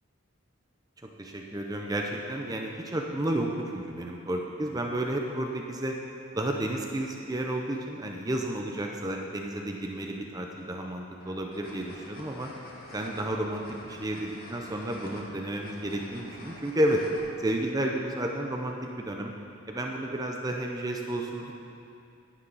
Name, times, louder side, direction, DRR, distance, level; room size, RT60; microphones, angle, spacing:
voice 1, 1.2-5.9 6.3-12.5 12.9-13.6 14.0-17.1 17.4-19.3 19.7-21.5, right 1 dB, 20° right, 1 dB, 0.6 m, -31 dB
sound 1, 11.2-17.2, left 1 dB, 50° left, 1.7 m, -47 dB
10.0 x 9.6 x 5.5 m, 2.6 s
head